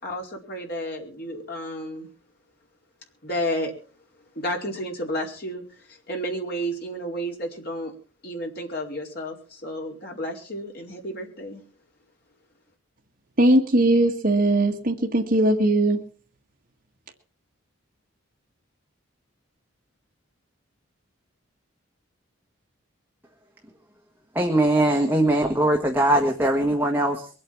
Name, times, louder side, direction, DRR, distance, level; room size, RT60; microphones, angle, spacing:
voice 1, 0.0-2.1 3.2-3.7 4.3-7.9 8.2-11.6, equal, 50° left, 4.5 m, -31 dB
voice 2, 13.4-16.1, right 1 dB, 45° right, 1.7 m, -20 dB
voice 3, 24.3-27.3, right 1 dB, 10° right, 1.5 m, -21 dB
23.0 x 8.8 x 6.0 m
head